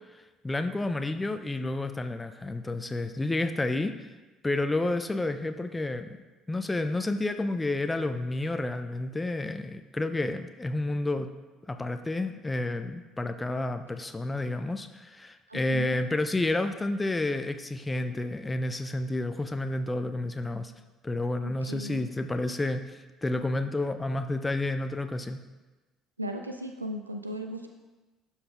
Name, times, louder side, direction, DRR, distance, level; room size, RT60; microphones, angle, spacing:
voice 1, 0.1-4.1 4.4-6.2 6.5-11.3 11.7-20.7 21.0-25.4, left 2 dB, 15° left, 8 dB, 0.4 m, -30 dB
voice 2, 15.5-15.9 21.4-22.0 26.2-27.7, equal, 85° right, 5 dB, 0.3 m, -36 dB
12.0 x 5.6 x 2.3 m, 1.2 s
figure-of-eight pair, 55°, 0 cm